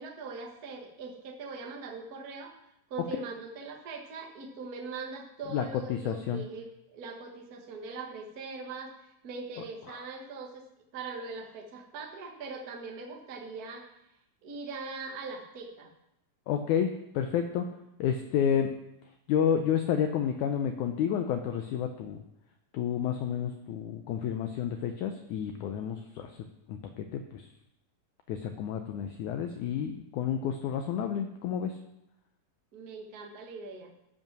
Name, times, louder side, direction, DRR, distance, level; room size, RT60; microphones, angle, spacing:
voice 1, 0.0-2.5 2.9-10.6 10.9-13.9 14.4-15.9 32.7-33.9, right 4 dB, 75° right, 1 dB, 0.8 m, -41 dB
voice 2, 5.5-6.4 9.9-10.1 16.5-17.7 18.0-18.7 19.3-22.2 22.7-27.5 28.3-31.8, left 8 dB, 80° left, 6 dB, 1.8 m, -30 dB
14.0 x 5.5 x 6.0 m, 0.85 s
omnidirectional pair, 4.1 m